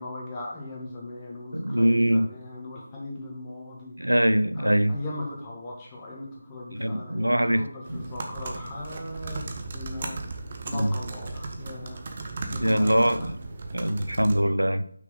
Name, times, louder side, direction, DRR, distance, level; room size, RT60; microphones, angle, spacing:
voice 1, 0.0-3.9 4.5-10.2 10.7-12.1 12.5-13.3, left 2 dB, 15° left, -4 dB, 1.8 m, -38 dB
voice 2, 1.5-2.3 4.0-4.9 6.7-7.6 7.9-8.0 10.7-10.9 12.5-13.3 13.7-14.8, equal, 85° right, 12 dB, 0.5 m, -23 dB
sound 1, 7.9-14.4, right 3 dB, 35° right, 0.9 m, -36 dB
6.1 x 5.6 x 3.8 m, 0.66 s
figure-of-eight pair, 160°, 0 cm